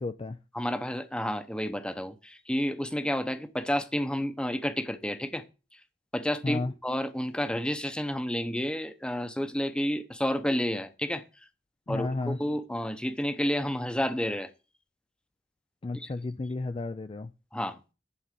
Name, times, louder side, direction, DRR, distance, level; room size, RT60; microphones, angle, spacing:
voice 1, 0.0-0.4 6.4-6.7 11.9-12.4 15.8-17.3, left 2 dB, 30° left, 0.4 m, -32 dB
voice 2, 0.5-5.4 6.1-11.2 11.9-14.5 15.9-16.1 17.5-17.8, equal, 5° left, 0.9 m, -30 dB
11.0 x 4.0 x 7.5 m
head